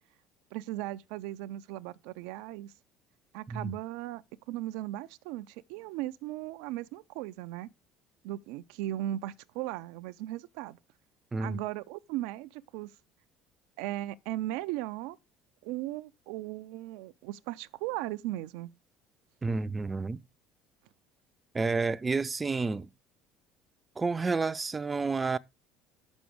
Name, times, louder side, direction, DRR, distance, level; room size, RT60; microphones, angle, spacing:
voice 1, 0.5-2.7 3.3-4.2 4.5-7.7 8.2-10.8 11.4-12.9 13.8-15.2 15.6-18.7, right 15 dB, 80° right, 0.4 m, -37 dB
voice 2, 19.4-20.2 21.5-22.9 24.0-25.4, right 4 dB, 25° right, 0.5 m, -30 dB
6.9 x 6.2 x 6.9 m
supercardioid pair, 80°, 0 cm